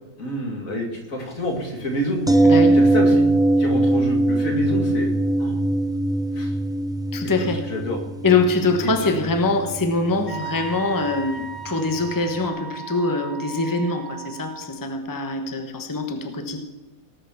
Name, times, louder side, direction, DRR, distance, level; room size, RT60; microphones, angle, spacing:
voice 1, 0.2-2.2 2.6-3.2 3.6-5.1 5.4-5.6 6.3-6.6 7.4-8.0, equal, 65° left, 2 dB, 2.7 m, -28 dB
sound 1, 2.3-12.1 12.4-12.5, right 2 dB, 5° right, 0.4 m, -22 dB
voice 2, 2.4-2.8 7.1-7.7 8.2-16.6, left 3 dB, 15° left, 5 dB, 1.1 m, -23 dB
Wind instrument woodwind instrument, 10.3-14.7, right 5 dB, 30° left, 2.7 m, -36 dB
18.5 x 6.5 x 7.1 m, 1.1 s
omnidirectional pair, 1.5 m